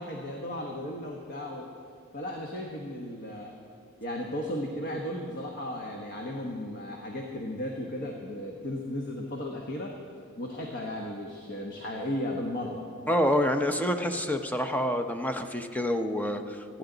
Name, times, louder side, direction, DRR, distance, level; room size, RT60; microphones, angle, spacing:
voice 1, 0.0-1.7 2.1-3.6 4.0-10.0 10.4-12.8, left 1 dB, 45° left, 1 dB, 1.2 m, -35 dB
voice 2, 13.1-16.6, equal, 5° left, 6 dB, 0.7 m, -27 dB
27.5 x 9.9 x 4.0 m, 2.3 s
head